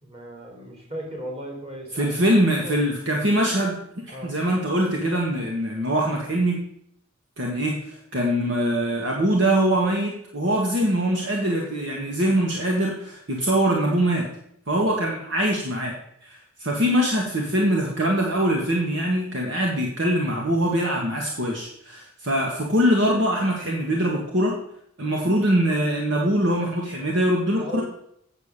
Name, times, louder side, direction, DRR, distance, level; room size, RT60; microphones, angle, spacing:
voice 1, 0.0-2.1 2.6-2.8 4.1-4.4 14.7-15.0 27.5-27.8, right 1 dB, 30° right, -1 dB, 3.4 m, -36 dB
voice 2, 1.9-3.8 4.1-6.6 7.4-14.3 14.7-15.9 16.2-24.5 25.0-27.8, right 1 dB, 55° right, -1 dB, 1.6 m, -23 dB
8.1 x 7.1 x 6.6 m, 0.71 s
head